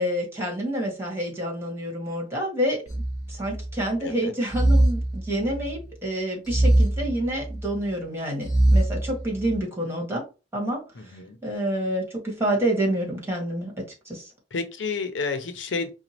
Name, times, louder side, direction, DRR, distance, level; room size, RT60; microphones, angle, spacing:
voice 1, 0.0-3.0 3.3-10.2 10.5-14.3, right 1 dB, 15° right, 1.7 m, -28 dB
sound 1, 2.9-3.8 4.5-5.8 6.5-7.8 8.4-9.6, right 1 dB, 20° left, 1.1 m, -22 dB
voice 2, 4.0-4.3 11.0-11.4 14.5-15.9, left 4 dB, 90° left, 0.7 m, -30 dB
5.1 x 2.3 x 2.9 m
head